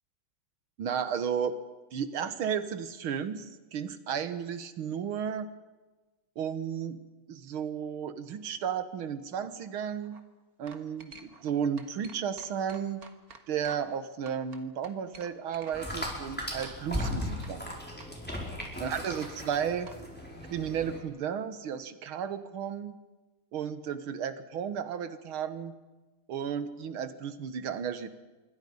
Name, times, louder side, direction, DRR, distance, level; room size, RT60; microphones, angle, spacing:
voice 1, 0.8-1.6 1.9-5.5 6.4-7.0 7.3-10.2 10.6-13.0 13.5-17.6 18.8-19.9 20.5-23.0 23.5-25.8 26.3-28.1, right 8 dB, 70° right, 12 dB, 2.1 m, -33 dB
sound 1, 9.9-10.2 10.7-11.5 11.8-14.0 14.3-16.1 16.6-17.2 17.4-20.0, right 5 dB, 45° right, 1.9 m, -49 dB
sound 2, 15.7-21.0, left 1 dB, 5° left, 5.1 m, -37 dB
26.5 x 24.0 x 5.6 m, 1.2 s
omnidirectional pair, 2.4 m